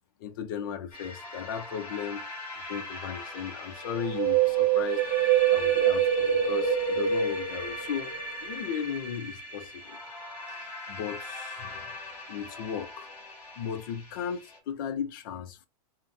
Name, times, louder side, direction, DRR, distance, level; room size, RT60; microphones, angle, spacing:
voice 1, 0.2-2.2 2.7-10.0 10.5-11.9 12.3-13.1 13.6-15.7, left 8 dB, 35° left, 0.5 m, -36 dB
sound 1, 0.9-14.6, equal, 15° left, 1.2 m, -40 dB
Wind, 3.9-8.3 8.5-8.6, right 9 dB, 40° right, 0.8 m, -25 dB
2.8 x 2.0 x 3.5 m
supercardioid pair, 170°, 19 cm